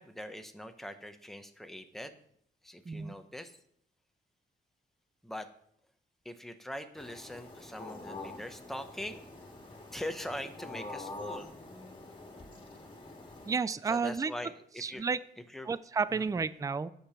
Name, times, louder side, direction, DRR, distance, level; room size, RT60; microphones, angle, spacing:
voice 1, 0.0-2.1 2.6-3.6 5.2-5.5 6.2-9.2 9.9-11.5 13.9-15.0 15.5-15.7 16.1-16.3, left 1 dB, ahead, 7 dB, 0.9 m, -42 dB
sound 1, 7.0-13.5, left 2 dB, 25° left, 2.1 m, -46 dB
voice 2, 13.5-14.3 14.8-15.2 15.7-16.9, right 5 dB, 20° right, 16 dB, 0.4 m, -31 dB
10.0 x 6.9 x 5.7 m, 0.69 s
wide cardioid pair, 115°, 19 cm